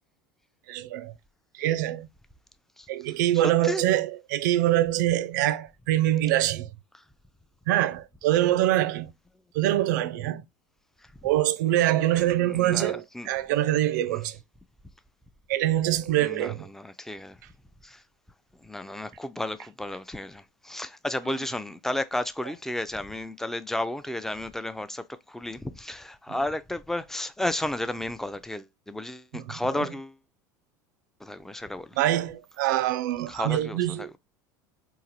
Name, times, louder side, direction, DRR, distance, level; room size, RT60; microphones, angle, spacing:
voice 1, 0.7-1.1 1.5-2.1 2.9-6.7 7.7-9.1 9.5-10.4 11.2-14.4 15.5-16.7 21.3-21.4 26.3-26.4 29.3-29.9 32.0-34.1, right 13 dB, 75° right, 0.4 m, -24 dB
voice 2, 12.1-13.3 14.1-14.2 16.2-17.4 17.8-18.0 18.6-30.1 31.2-32.0 33.3-34.2, left 1 dB, 5° left, 0.4 m, -33 dB
3.7 x 2.3 x 2.9 m
hypercardioid pair, 85°, 10 cm